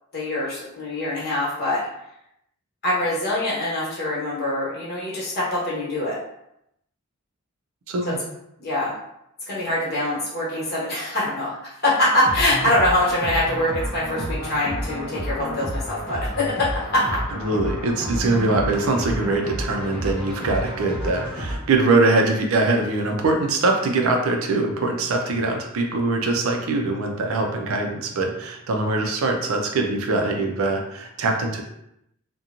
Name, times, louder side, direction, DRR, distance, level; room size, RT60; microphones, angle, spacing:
voice 1, 0.1-1.8 2.8-6.2 8.1-8.2 8.6-8.9 9.5-11.6 11.8-17.1, left 1 dB, 45° left, -8 dB, 1.2 m, -24 dB
voice 2, 7.9-8.2 17.4-31.6, right 2 dB, 70° right, 3 dB, 0.4 m, -22 dB
sound 1, 12.2-21.6, equal, 5° left, 1.1 m, -30 dB
2.9 x 2.2 x 2.5 m, 0.80 s
head